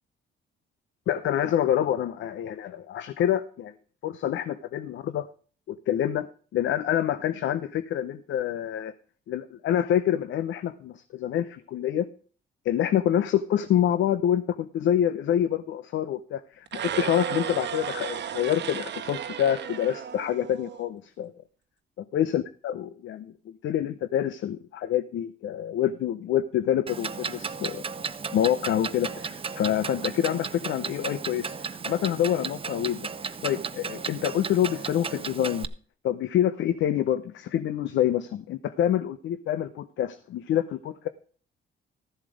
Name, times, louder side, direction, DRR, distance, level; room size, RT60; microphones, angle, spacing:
voice 1, 1.1-3.7 4.0-5.3 5.7-6.3 6.5-8.9 9.3-12.1 12.6-21.3 22.1-27.8 28.3-35.7 36.0-41.1, left 10 dB, 75° left, 12 dB, 0.7 m, -27 dB
sound 1, 16.7-20.8, right 9 dB, 60° right, 1.1 m, -34 dB
Clock, 26.9-35.7, right 5 dB, 25° right, 0.6 m, -35 dB
13.5 x 7.3 x 5.0 m, 0.42 s
cardioid pair, 90°, 20 cm